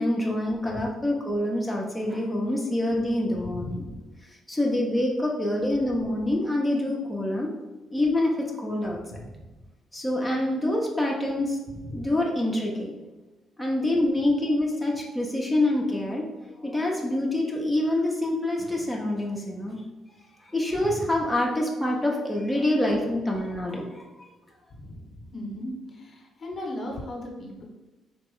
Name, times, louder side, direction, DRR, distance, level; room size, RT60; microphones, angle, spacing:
voice 1, 0.0-3.8 4.5-7.5 7.9-9.0 9.9-11.6 11.9-13.0 13.6-19.8 20.5-24.0, left 1 dB, 5° left, -2 dB, 0.8 m, -26 dB
voice 2, 3.4-4.1 9.1-9.4 11.7-12.1 20.8-21.1 24.7-27.6, left 1 dB, 45° left, -1 dB, 1.2 m, -37 dB
4.2 x 2.9 x 3.7 m, 1.1 s
supercardioid pair, 60°, 0 cm